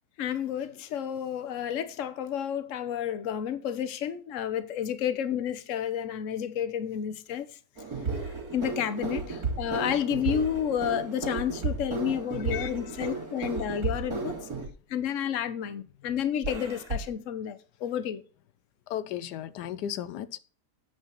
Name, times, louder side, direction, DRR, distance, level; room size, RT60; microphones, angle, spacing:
voice 1, 0.2-7.4 8.5-14.4 14.9-18.2, left 9 dB, 55° left, 1.2 m, -31 dB
sound 1, 7.8-14.7 16.4-17.0, right 4 dB, 65° right, 2.9 m, -33 dB
voice 2, 12.6-13.2 18.9-20.4, left 10 dB, 90° left, 1.2 m, -36 dB
8.6 x 5.0 x 5.7 m
omnidirectional pair, 1.7 m